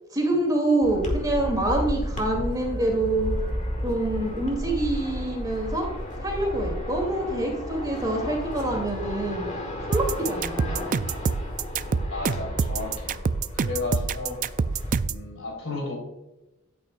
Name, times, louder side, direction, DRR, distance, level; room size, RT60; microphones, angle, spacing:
voice 1, 0.1-3.3 3.8-5.9 6.2-9.5 9.9-10.8, right 1 dB, 20° right, 0 dB, 2.5 m, -26 dB
sound 1, 0.8-14.9, equal, 35° left, 2.2 m, -33 dB
sound 2, 9.9-15.2, right 5 dB, 40° right, 0.4 m, -26 dB
voice 2, 12.1-13.2 13.5-14.4 15.0-16.0, left 3 dB, 65° left, 0 dB, 3.5 m, -33 dB
12.5 x 8.7 x 2.4 m, 0.97 s
head